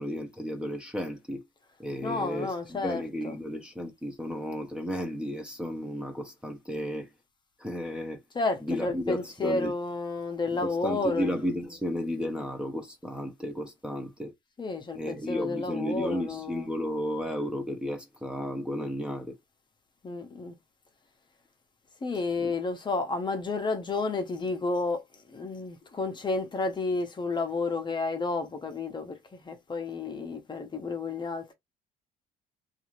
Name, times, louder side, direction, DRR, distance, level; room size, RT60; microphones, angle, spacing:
voice 1, 0.0-1.4 1.8-7.1 7.6-8.2 8.6-9.7 10.6-14.3 14.9-19.3 22.4-22.5, equal, 5° right, 0.7 m, -33 dB
voice 2, 2.0-3.4 8.3-11.3 14.6-16.7 20.0-20.6 22.0-31.5, left 3 dB, 25° left, 0.8 m, -31 dB
2.7 x 2.5 x 3.0 m
cardioid pair, 110°, 17 cm